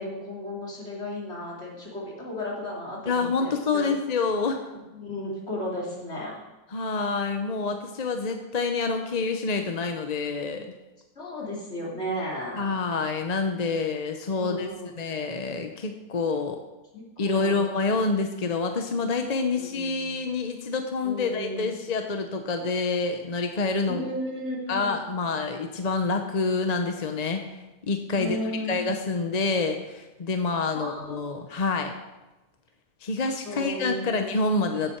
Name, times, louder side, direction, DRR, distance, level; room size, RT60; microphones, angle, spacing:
voice 1, 0.0-3.9 4.9-6.3 11.2-12.8 14.4-14.9 16.9-17.6 19.5-20.2 21.0-21.7 23.9-25.0 28.1-28.7 30.7-31.3 33.4-34.0, left 1 dB, 50° left, -4 dB, 3.3 m, -34 dB
voice 2, 3.1-4.7 6.7-10.7 12.6-14.7 15.0-16.6 17.2-24.1 24.7-27.4 27.9-28.4 28.7-31.9 33.0-35.0, left 4 dB, 35° left, 5 dB, 0.8 m, -27 dB
15.0 x 7.7 x 4.5 m, 1.0 s
omnidirectional pair, 1.4 m